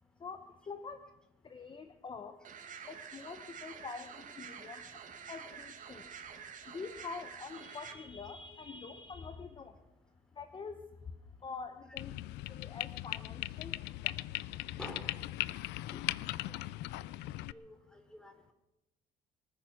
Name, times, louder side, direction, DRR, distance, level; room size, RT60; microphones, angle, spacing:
voice 1, 0.2-1.0 1.4-2.3 2.8-4.8 5.3-6.0 6.7-9.7 10.4-10.7 11.4-12.1 12.5-13.7 14.0-14.1 15.9-16.1, left 5 dB, 30° left, 8 dB, 1.1 m, -45 dB
sound 1, 2.4-7.9, right 7 dB, 50° right, 2.2 m, -48 dB
sound 2, 12.0-17.5, left 17 dB, 85° left, 0.5 m, -39 dB
voice 2, 14.8-15.3 16.4-16.6 17.5-18.5, equal, 5° left, 6 dB, 3.4 m, -50 dB
24.5 x 9.3 x 6.1 m, 0.92 s
cardioid pair, 110°, 17 cm